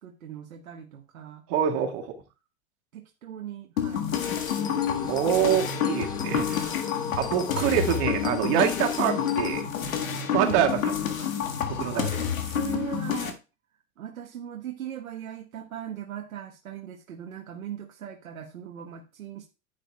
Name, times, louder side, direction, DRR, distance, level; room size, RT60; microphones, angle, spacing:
voice 1, 0.0-1.4 1.7-1.8 2.9-5.6 6.3-6.8 7.3-8.0 10.4-10.7 11.9-13.4 14.0-19.5, right 9 dB, 80° right, 2 dB, 1.3 m, -39 dB
voice 2, 1.5-2.2 5.1-9.7 10.3-11.3 11.7-12.0, right 9 dB, 50° right, 2 dB, 2.0 m, -26 dB
sound 1, 3.8-13.3, left 8 dB, 75° left, 1.8 m, -29 dB
sound 2, 4.1-9.6, left 7 dB, 10° left, 0.4 m, -37 dB
10.0 x 9.4 x 2.3 m, 0.29 s
hypercardioid pair, 100°, 41 cm